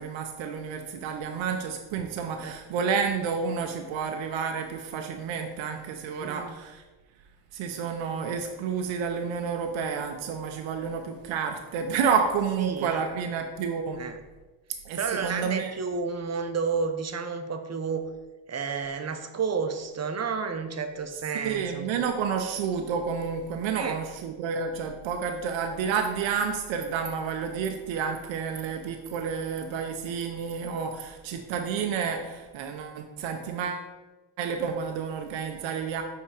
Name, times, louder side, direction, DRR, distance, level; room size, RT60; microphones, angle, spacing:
voice 1, 0.0-6.8 7.5-14.0 14.8-15.7 21.1-33.9 34.4-36.0, right 6 dB, 90° right, 5 dB, 0.6 m, -30 dB
voice 2, 6.2-6.6 12.6-13.1 14.0-14.2 14.9-18.1 18.5-22.0 23.8-24.0, right 5 dB, 35° right, 7 dB, 0.7 m, -31 dB
5.5 x 3.6 x 4.9 m, 1.2 s
cardioid pair, 90°, 45 cm